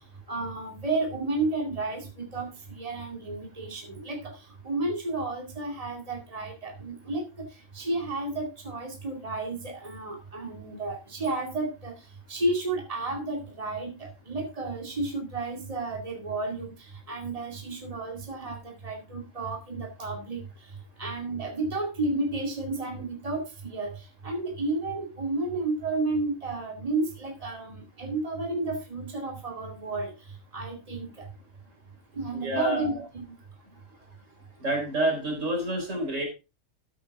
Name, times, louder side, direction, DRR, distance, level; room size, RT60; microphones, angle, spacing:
voice 1, 0.3-7.5 7.7-12.0 12.3-31.3 32.1-33.2, right 2 dB, 30° right, 2 dB, 2.3 m, -32 dB
voice 2, 32.3-33.0 34.6-36.3, right 1 dB, 75° right, 2 dB, 4.3 m, -28 dB
13.0 x 8.5 x 3.5 m, 0.28 s
omnidirectional pair, 1.3 m